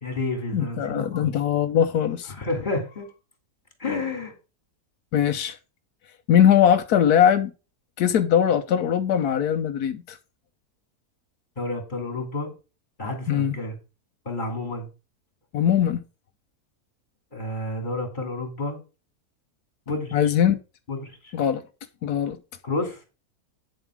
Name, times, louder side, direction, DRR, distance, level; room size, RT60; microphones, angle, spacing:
voice 1, 0.0-1.3 2.3-3.1 3.8-4.3 11.6-12.5 13.0-13.7 14.2-14.9 17.3-18.8 19.9-20.3 20.9-21.3 22.6-23.0, left 2 dB, 30° left, 2.7 m, -30 dB
voice 2, 0.5-2.3 5.1-5.6 6.3-7.5 8.0-10.2 13.3-13.5 15.5-16.0 20.1-20.6 21.3-21.6 22.0-22.4, left 9 dB, 85° left, 1.3 m, -21 dB
9.1 x 7.3 x 4.5 m
omnidirectional pair, 1.6 m